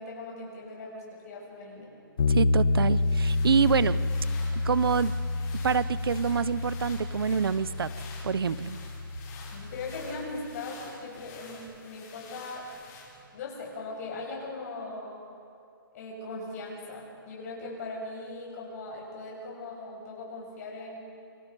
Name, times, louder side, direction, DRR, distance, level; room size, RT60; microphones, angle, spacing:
voice 1, 0.0-2.0 9.5-12.8 13.3-15.2 15.9-21.0, left 2 dB, 45° left, -2 dB, 7.7 m, -39 dB
sound 1, 2.2-10.3, left 3 dB, 80° left, 1.5 m, -29 dB
voice 2, 2.3-4.0 4.6-5.1 5.6-7.9 8.2-8.8, right 6 dB, 90° right, 17 dB, 0.8 m, -26 dB
sound 2, 2.7-13.4, left 3 dB, 25° left, 5.8 m, -49 dB
27.5 x 25.5 x 5.4 m, 2.6 s
hypercardioid pair, 155°, 12 cm